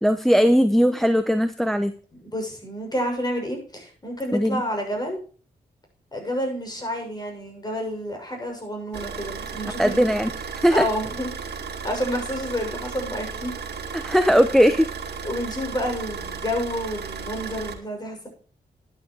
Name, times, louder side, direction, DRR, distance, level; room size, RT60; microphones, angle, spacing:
voice 1, 0.0-1.9 4.3-4.6 9.8-10.9 13.9-14.9, equal, ahead, 10 dB, 0.9 m, -19 dB
voice 2, 2.3-5.2 6.1-10.0 10.7-11.3 11.8-13.5 15.2-18.3, equal, 25° left, 2 dB, 6.5 m, -29 dB
Car / Idling, 8.9-17.7, right 6 dB, 80° right, 2.1 m, -34 dB
11.5 x 10.0 x 4.8 m, 0.41 s
cardioid pair, 65°, 17 cm